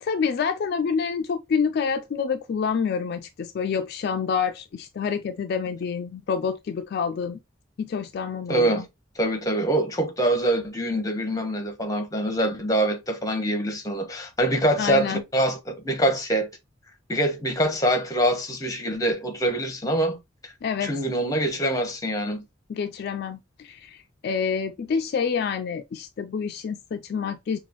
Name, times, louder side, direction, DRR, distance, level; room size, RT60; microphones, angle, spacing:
voice 1, 0.0-7.4 7.8-8.8 14.8-15.2 20.6-20.9 22.7-27.6, left 6 dB, 55° left, 0.3 m, -27 dB
voice 2, 8.5-8.8 9.2-16.5 17.1-20.2 20.8-22.4, right 1 dB, 20° left, 0.9 m, -24 dB
5.9 x 2.4 x 2.9 m
head